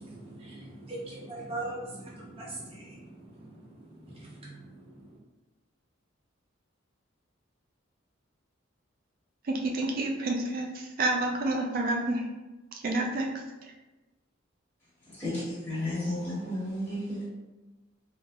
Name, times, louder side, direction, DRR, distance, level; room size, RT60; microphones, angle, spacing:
voice 1, 0.0-5.2, right 2 dB, 30° right, -5 dB, 0.7 m, -42 dB
voice 2, 9.5-12.2 12.8-13.3, right 2 dB, 50° right, 1 dB, 0.3 m, -29 dB
voice 3, 15.2-17.3, left 1 dB, 10° left, -12 dB, 1.4 m, -33 dB
3.2 x 2.4 x 2.2 m, 1.1 s
head